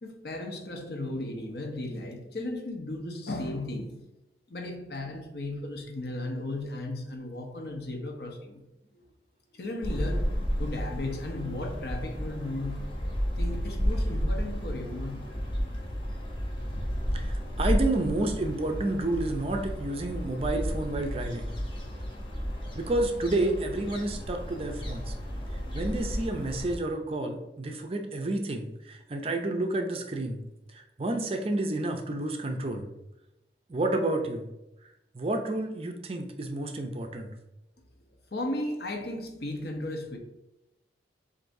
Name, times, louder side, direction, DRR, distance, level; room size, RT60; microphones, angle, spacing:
voice 1, 0.0-4.0 4.5-8.6 8.9-9.0 9.5-12.9 13.4-15.4 38.3-40.2, left 1 dB, 60° left, 0.8 m, -35 dB
sound 1, 9.8-26.8, equal, 25° left, 0.8 m, -32 dB
voice 2, 17.1-21.5 22.8-25.1 25.7-30.4 30.7-32.8 33.7-34.5 35.1-37.3, right 2 dB, 30° right, 0.5 m, -30 dB
7.6 x 2.6 x 2.6 m
head